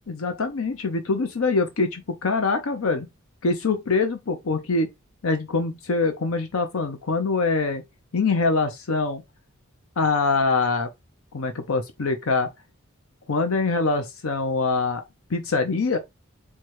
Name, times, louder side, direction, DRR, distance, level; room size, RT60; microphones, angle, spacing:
voice 1, 0.1-3.1 3.4-4.9 5.2-7.8 8.1-9.2 10.0-10.9 11.3-12.5 13.3-15.0 15.3-16.0, left 3 dB, 80° left, 0.7 m, -24 dB
4.6 x 2.3 x 4.6 m
head